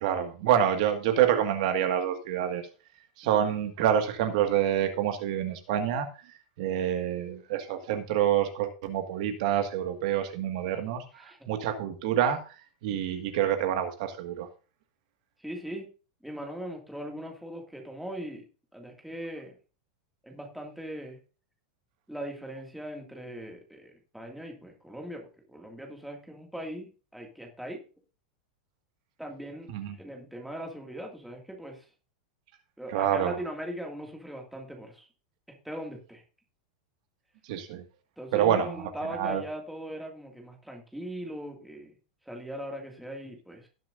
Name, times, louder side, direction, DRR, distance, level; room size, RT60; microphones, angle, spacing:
voice 1, 0.0-2.7 3.2-6.1 6.6-11.0 11.5-12.4 12.8-14.5 29.7-30.0 32.9-33.4 37.5-37.8 38.3-38.7 39.1-39.4, right 10 dB, 60° right, 6 dB, 1.8 m, -27 dB
voice 2, 15.4-15.9 16.2-18.4 18.7-19.5 20.2-21.2 22.1-27.8 29.2-29.7 30.0-31.8 32.8-35.1 35.6-36.2 38.2-41.9 42.3-43.7, right 1 dB, ahead, 1 dB, 2.1 m, -40 dB
18.0 x 7.5 x 2.6 m, 0.34 s
supercardioid pair, 150°, 4 cm